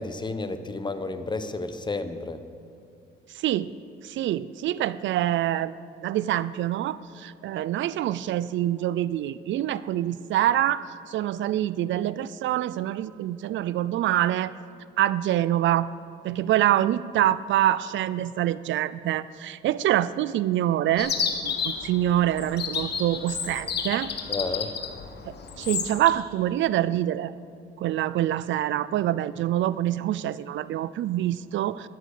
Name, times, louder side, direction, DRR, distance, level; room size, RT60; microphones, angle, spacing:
voice 1, 0.0-2.4 24.3-24.7, left 3 dB, 20° left, 10 dB, 1.0 m, -31 dB
voice 2, 3.3-3.7 4.0-5.7 6.0-14.5 15.0-15.9 16.2-21.1 21.4-24.1 25.3-27.3 27.8-31.9, right 13 dB, 70° right, 17 dB, 0.4 m, -25 dB
Chirp tweet, 21.0-26.1, left 6 dB, 55° left, 1.4 m, -31 dB
13.0 x 11.0 x 6.6 m, 2.4 s
cardioid pair, 90°, 20 cm